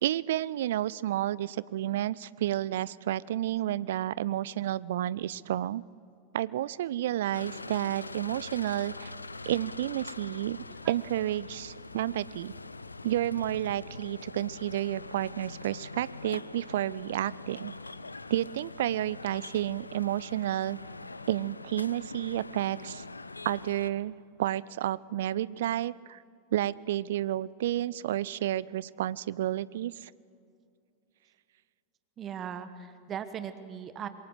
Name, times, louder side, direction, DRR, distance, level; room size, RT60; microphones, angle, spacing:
voice 1, 0.0-5.8 6.3-9.1 9.4-12.5 13.0-17.7 18.3-20.8 21.3-23.0 23.4-26.2 26.5-30.1, right 13 dB, 55° right, 21 dB, 0.4 m, -31 dB
sound 1, 7.3-23.9, left 3 dB, 80° left, 0.6 m, -43 dB
voice 2, 32.2-34.1, right 8 dB, 30° right, 11 dB, 1.3 m, -39 dB
26.0 x 22.5 x 6.1 m, 2.5 s
figure-of-eight pair, 90°, 0 cm